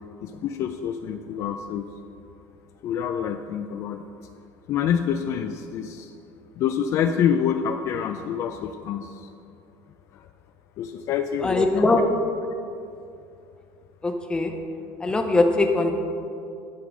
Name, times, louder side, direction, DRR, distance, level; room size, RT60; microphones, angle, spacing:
voice 1, 0.2-1.9 2.8-4.1 4.7-6.1 6.5-9.3 10.1-10.3 10.8-11.8, left 8 dB, 50° left, 7 dB, 0.4 m, -27 dB
voice 2, 11.4-12.0 14.0-14.5 15.0-15.9, left 2 dB, 15° left, 4 dB, 0.8 m, -21 dB
11.0 x 3.8 x 6.1 m, 2.5 s
cardioid pair, 135°, 7 cm